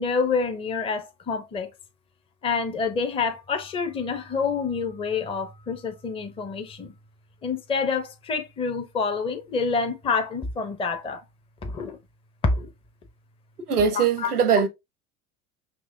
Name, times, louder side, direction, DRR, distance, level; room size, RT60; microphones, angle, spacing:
voice 1, 0.0-1.7 2.4-6.9 7.4-11.2 11.6-11.9 12.4-12.7 14.0-14.3, left 4 dB, 15° left, 0.6 m, -27 dB
voice 2, 13.7-14.7, right 6 dB, 80° right, 0.8 m, -21 dB
5.5 x 3.0 x 2.6 m
figure-of-eight pair, 75°, 44 cm